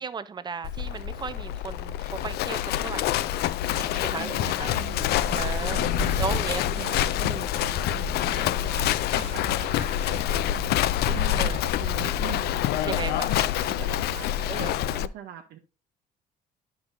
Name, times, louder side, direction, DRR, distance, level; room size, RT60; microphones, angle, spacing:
voice 1, 0.0-2.0 2.2-3.4 3.8-4.7 5.4-5.8 6.2-6.6 11.4-11.6 12.8-13.3 14.5-14.8, right 6 dB, 25° right, 0.5 m, -35 dB
Livestock farm animals working animals, 0.6-15.1, left 12 dB, 70° left, 0.4 m, -27 dB
voice 2, 4.1-5.2 5.6-10.6 10.9-15.6, right 10 dB, 75° right, 0.8 m, -42 dB
sound 1, 4.6-12.3, left 3 dB, 35° left, 1.1 m, -35 dB
9.8 x 5.9 x 2.6 m
cardioid pair, 110°, 17 cm